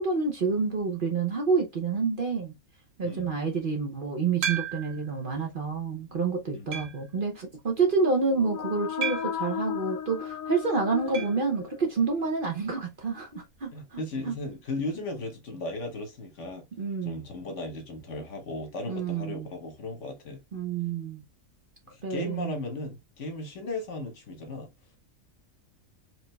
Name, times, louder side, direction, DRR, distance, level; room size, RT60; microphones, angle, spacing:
voice 1, 0.0-2.5 3.0-14.0 14.2-14.3 16.8-17.2 18.9-19.5 20.5-21.2 22.0-22.5, right 4 dB, 45° right, 0.8 m, -28 dB
sound 1, 4.4-5.1 5.7-5.8 6.7-7.1 9.0-9.5 11.1-11.4 11.7-11.8 12.1-12.2 14.2-14.3, right 7 dB, 70° right, 1.1 m, -33 dB
sound 2, 8.2-12.1, left 9 dB, 80° left, 1.0 m, -35 dB
voice 2, 13.7-16.6 17.0-20.4 21.9-24.7, left 2 dB, 60° left, 1.3 m, -36 dB
4.6 x 3.2 x 2.2 m
omnidirectional pair, 1.4 m